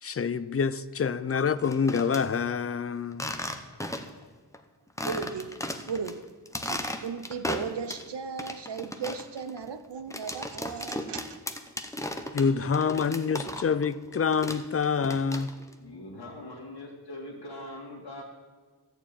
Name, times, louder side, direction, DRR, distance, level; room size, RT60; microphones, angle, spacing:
voice 1, 0.0-3.3 12.3-15.5, left 6 dB, 35° left, 0.4 m, -27 dB
sound 1, 1.5-2.2 3.1-4.2 4.5-4.6 5.0-6.1 6.5-8.1 8.4-13.9 14.1-15.7, left 1 dB, 5° left, 0.7 m, -35 dB
voice 2, 5.0-5.6 5.9-6.3 6.5-11.4, right 6 dB, 80° right, 0.8 m, -36 dB
voice 3, 15.8-18.2, left 1 dB, 75° left, 1.8 m, -42 dB
13.5 x 4.6 x 8.7 m
wide cardioid pair, 95°, 41 cm